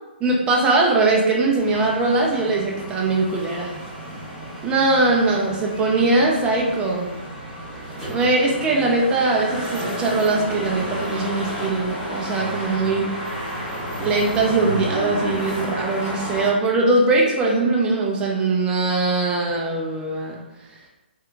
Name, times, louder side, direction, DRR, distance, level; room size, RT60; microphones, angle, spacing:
voice 1, 0.2-3.7 4.6-7.1 8.1-13.1 14.0-20.4, right 2 dB, 15° right, -2 dB, 0.5 m, -21 dB
sound 1, 1.6-16.5, equal, 10° left, 1.2 m, -31 dB
3.5 x 2.8 x 2.4 m, 1.0 s
hypercardioid pair, 145°, 6 cm